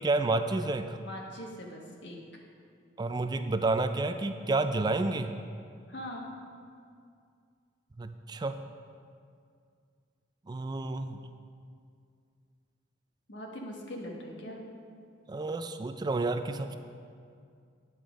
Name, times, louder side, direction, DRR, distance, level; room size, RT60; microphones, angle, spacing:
voice 1, 0.0-1.0 3.0-5.3 8.0-8.6 10.5-11.2 15.3-16.8, right 2 dB, 25° right, 9 dB, 0.3 m, -30 dB
voice 2, 1.0-2.2 5.9-6.3 13.3-14.6, left 1 dB, 75° left, 0 dB, 1.4 m, -41 dB
9.4 x 7.2 x 5.0 m, 2.3 s
head